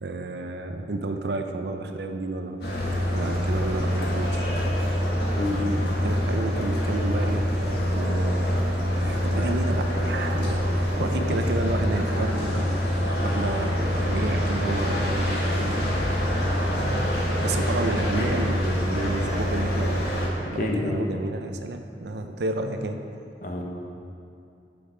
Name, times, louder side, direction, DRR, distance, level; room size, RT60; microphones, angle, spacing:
voice 1, 0.0-2.8 3.1-4.7 5.5-7.4 7.9-12.7 13.2-16.0 16.8-20.0 20.5-23.0, right 2 dB, 70° right, 6 dB, 0.6 m, -31 dB
sound 1, 2.6-20.3, equal, 65° left, 1.7 m, -25 dB
voice 2, 20.4-21.0 23.4-23.6, left 1 dB, 45° left, 1 dB, 1.0 m, -28 dB
8.5 x 6.2 x 5.0 m, 2.6 s
head